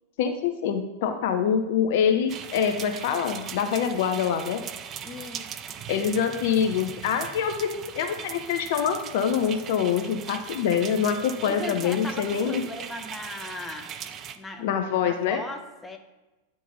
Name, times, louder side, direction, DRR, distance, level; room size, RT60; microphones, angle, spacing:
voice 1, 0.2-4.6 5.9-12.6 14.6-15.4, left 7 dB, 50° left, 7 dB, 0.5 m, -25 dB
sound 1, 2.3-14.4, right 8 dB, 30° right, 0.4 m, -39 dB
voice 2, 5.0-5.8 11.4-13.9 14.3-16.0, left 2 dB, 10° left, 5 dB, 0.8 m, -38 dB
9.0 x 3.8 x 3.9 m, 1.1 s
figure-of-eight pair, 90°, 0 cm